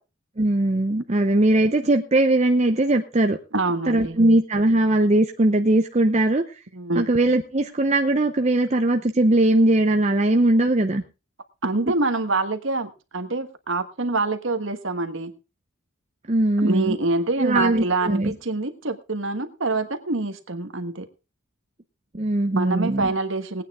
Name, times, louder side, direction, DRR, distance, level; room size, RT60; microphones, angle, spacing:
voice 1, 0.4-3.4 3.9-6.4 6.9-11.0 16.3-17.0 17.4-18.3 22.1-23.1, right 1 dB, 30° right, 5 dB, 0.7 m, -20 dB
voice 2, 3.5-4.2 6.7-7.0 11.6-15.3 16.6-21.1 22.5-23.6, right 2 dB, 55° right, 8 dB, 1.3 m, -26 dB
18.5 x 9.1 x 3.6 m, 0.30 s
head